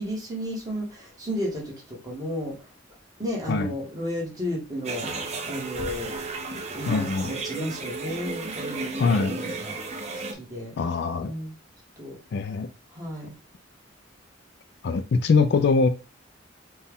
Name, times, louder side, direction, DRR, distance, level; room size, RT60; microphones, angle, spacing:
voice 1, 0.0-2.6 3.2-5.0 5.4-6.1 6.7-9.7 10.1-10.7 11.2-11.5 12.0-12.2 12.9-13.3, equal, 20° right, 1.4 m, -33 dB
sound 1, 4.8-10.3, right 3 dB, 35° right, 0.6 m, -33 dB
voice 2, 6.9-7.3 9.0-9.4 10.8-11.3 12.3-12.7 14.8-15.9, left 4 dB, 60° left, 0.3 m, -22 dB
4.3 x 2.3 x 3.5 m
head